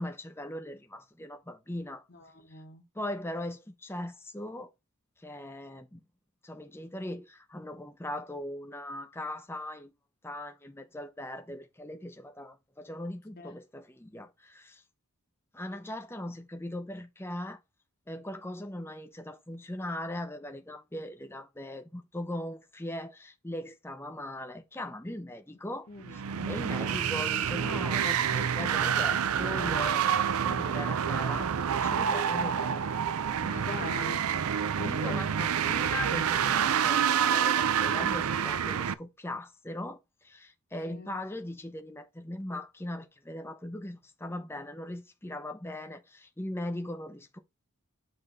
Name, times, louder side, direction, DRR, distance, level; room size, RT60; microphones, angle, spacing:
voice 1, 0.0-2.0 2.5-2.6 2.9-4.7 5.2-6.0 6.4-9.9 10.2-14.8 15.5-17.6 18.1-26.2 26.5-33.0 34.8-47.4, left 1 dB, 10° left, 0.7 m, -39 dB
voice 2, 2.1-2.8 13.4-13.5 25.9-26.6 33.4-34.3 34.8-35.8 40.8-41.2, left 3 dB, 45° left, 1.2 m, -43 dB
sound 1, 26.0-38.9, right 8 dB, 75° right, 0.5 m, -28 dB
7.7 x 3.3 x 4.0 m
head